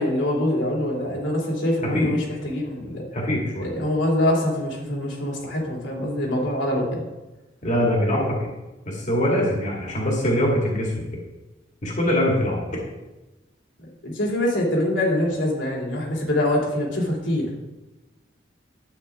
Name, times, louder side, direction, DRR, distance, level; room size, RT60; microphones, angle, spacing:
voice 1, 0.0-3.0 3.6-7.0 14.0-17.5, left 1 dB, 85° left, -2 dB, 2.7 m, -24 dB
voice 2, 3.1-3.7 7.6-8.4 8.9-11.0 11.8-12.8, equal, 40° left, -2 dB, 1.9 m, -23 dB
11.0 x 8.5 x 3.4 m, 1.1 s
head